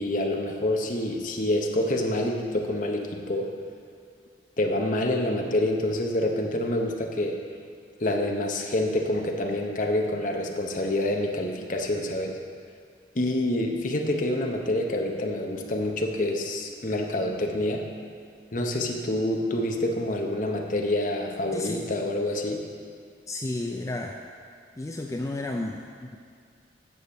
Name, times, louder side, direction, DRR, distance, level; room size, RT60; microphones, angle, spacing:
voice 1, 0.0-3.5 4.6-7.4 8.0-12.4 13.1-17.9 18.5-22.6, left 1 dB, 45° left, 2 dB, 0.9 m, -27 dB
voice 2, 21.5-21.9 23.3-24.2 24.8-26.2, left 2 dB, 15° left, 2 dB, 0.4 m, -32 dB
9.4 x 4.9 x 7.0 m, 2.2 s
head